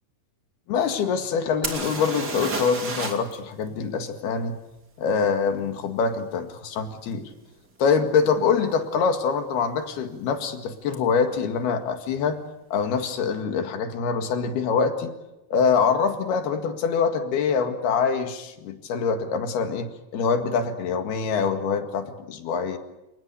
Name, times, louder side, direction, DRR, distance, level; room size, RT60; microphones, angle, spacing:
voice 1, 0.7-4.6 5.0-7.3 7.8-12.4 12.7-15.1 15.5-22.8, left 6 dB, 75° left, 7 dB, 3.9 m, -24 dB
sound 1, 1.6-3.3 3.6-3.7 7.1-7.2 7.9-8.0 8.3-8.9 10.9-11.0 11.3-11.4, right 3 dB, 25° right, 2.9 m, -31 dB
29.0 x 19.5 x 8.3 m, 0.97 s
omnidirectional pair, 4.5 m